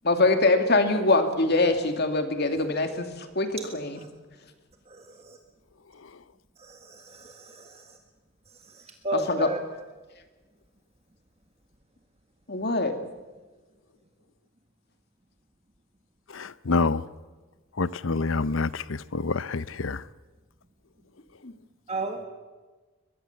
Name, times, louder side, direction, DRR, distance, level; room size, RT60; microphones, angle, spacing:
voice 1, 0.0-4.0 9.1-9.5 12.5-12.9 21.4-21.5, left 2 dB, 50° left, 2.4 m, -23 dB
voice 2, 4.9-5.4 6.6-7.8 9.0-9.6 21.9-22.2, right 2 dB, 30° right, 1.7 m, -33 dB
voice 3, 16.3-17.0 17.8-20.0, left 3 dB, 70° left, 0.7 m, -27 dB
22.5 x 22.0 x 7.2 m
head